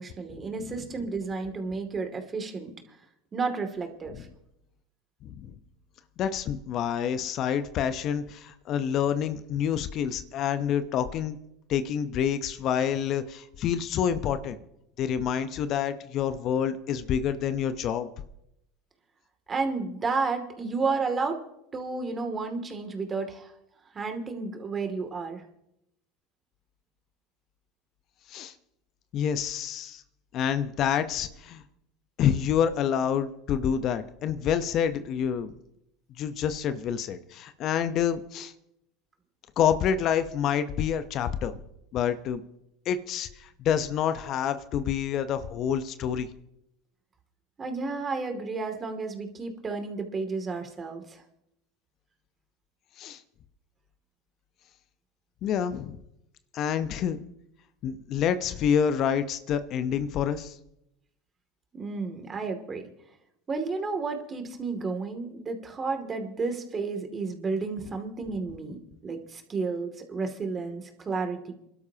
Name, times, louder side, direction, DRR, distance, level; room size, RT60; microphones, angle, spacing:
voice 1, 0.0-2.7 3.3-4.3 19.5-21.4 21.7-23.5 23.9-25.4 47.6-51.2 61.7-62.8 63.5-71.5, right 4 dB, 30° right, 5 dB, 2.5 m, -32 dB
voice 2, 5.2-5.5 6.2-11.4 11.7-14.6 15.0-18.1 28.3-28.5 29.1-30.0 30.3-31.6 32.2-35.5 36.2-38.5 39.6-41.5 41.9-42.4 42.9-46.3 53.0-53.2 55.4-56.0 56.5-57.2 57.8-60.6, left 8 dB, 50° left, 11 dB, 0.9 m, -27 dB
28.0 x 12.5 x 2.9 m, 0.81 s
hypercardioid pair, 85°, 0 cm